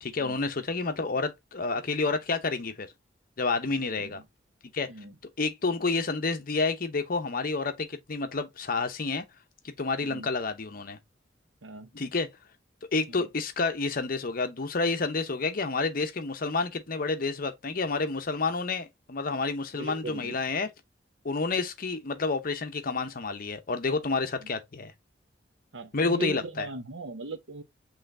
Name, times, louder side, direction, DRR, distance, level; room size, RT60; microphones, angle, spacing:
voice 1, 0.0-2.9 3.4-4.2 4.7-4.9 5.4-9.2 9.6-11.0 11.9-12.3 12.9-20.7 21.2-24.9 25.9-26.7, left 3 dB, 50° left, 0.7 m, -29 dB
voice 2, 3.8-4.1 4.9-5.1 10.0-10.3 11.6-11.9 13.1-13.3 19.7-20.4 25.7-27.6, right 2 dB, 80° right, 0.9 m, -39 dB
5.6 x 3.2 x 2.6 m
head